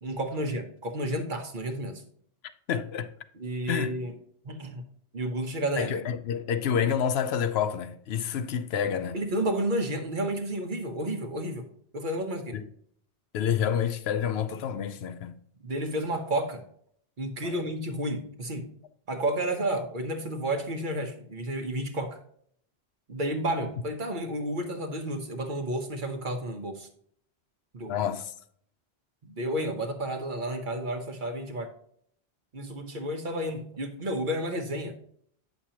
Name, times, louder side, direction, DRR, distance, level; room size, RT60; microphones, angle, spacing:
voice 1, 0.0-2.0 3.3-4.1 4.4-4.8 5.1-6.0 9.1-11.7 11.9-12.6 15.6-16.6 17.2-18.7 19.1-22.2 23.1-26.9 27.7-28.0 29.2-31.7 32.5-35.0, right 1 dB, 50° right, 1.0 m, -31 dB
voice 2, 2.7-3.1 3.7-3.9 5.8-9.2 12.5-12.7 13.3-15.4 17.4-17.5 27.9-28.3, left 8 dB, 75° left, 0.8 m, -28 dB
8.7 x 6.4 x 2.8 m
omnidirectional pair, 1.1 m